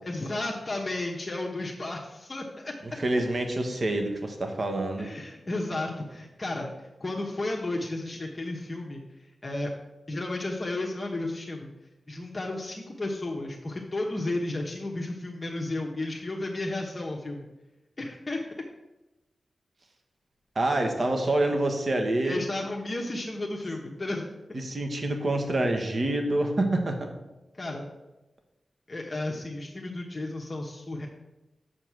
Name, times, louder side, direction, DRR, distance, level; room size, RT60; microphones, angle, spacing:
voice 1, 0.0-2.7 5.0-6.7 7.0-9.0 9.4-9.7 10.1-11.7 12.1-17.5 18.0-18.4 22.2-24.3 27.5-27.9 28.9-31.1, left 2 dB, 35° left, -1 dB, 1.1 m, -33 dB
voice 2, 2.8-5.1 20.5-22.4 24.5-27.1, right 1 dB, 50° right, 4 dB, 1.4 m, -27 dB
7.2 x 5.2 x 6.1 m, 1.0 s
cardioid pair, 70°, 0 cm